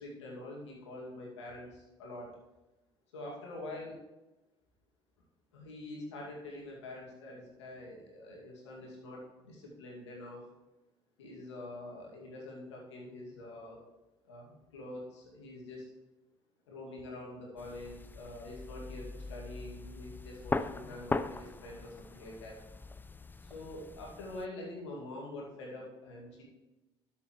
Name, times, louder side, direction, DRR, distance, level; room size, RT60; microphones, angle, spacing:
voice 1, 0.0-2.3 3.1-3.9 5.5-10.4 11.2-13.8 14.2-15.9 16.7-22.5 23.4-26.4, left 1 dB, 90° left, -2 dB, 2.4 m, -45 dB
sound 1, 17.6-24.5, left 3 dB, 15° left, 0.5 m, -40 dB
12.0 x 7.1 x 3.2 m, 1.1 s
hypercardioid pair, 60°, 14 cm